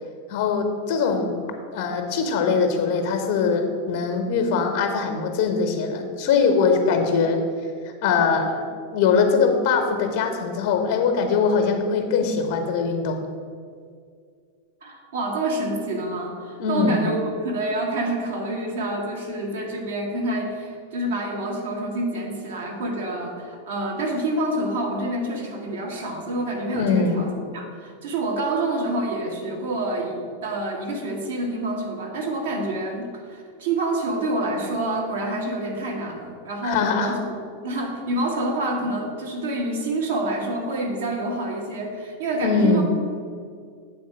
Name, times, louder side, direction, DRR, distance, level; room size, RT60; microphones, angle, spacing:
voice 1, 0.3-1.4 1.7-7.4 8.0-8.7 8.9-13.3 16.6-17.1 26.7-27.3 36.6-37.1 42.4-42.8, left 5 dB, 50° left, 5 dB, 0.9 m, -22 dB
voice 2, 14.8-37.4 37.6-42.8, right 1 dB, 60° right, 0 dB, 1.5 m, -27 dB
8.0 x 4.3 x 6.0 m, 2.2 s
figure-of-eight pair, 90°, 0 cm